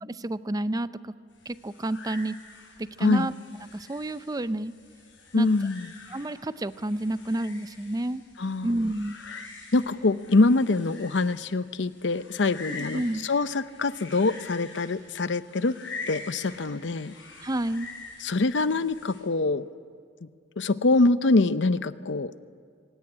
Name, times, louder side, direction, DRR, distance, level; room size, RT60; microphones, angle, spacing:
voice 1, 0.0-1.1 1.5-2.3 3.0-3.3 3.6-4.7 5.4-5.5 6.1-8.2 8.6-9.2 12.7-13.2 17.4-17.9, right 1 dB, 20° right, 14 dB, 0.5 m, -30 dB
sound 1, 1.3-19.2, left 4 dB, 90° left, 6.8 m, -45 dB
voice 2, 5.3-5.9 8.4-8.7 9.7-15.8 16.1-17.1 18.2-19.6 20.6-22.3, left 3 dB, 70° left, 14 dB, 0.7 m, -24 dB
23.5 x 17.5 x 10.0 m, 2.1 s
head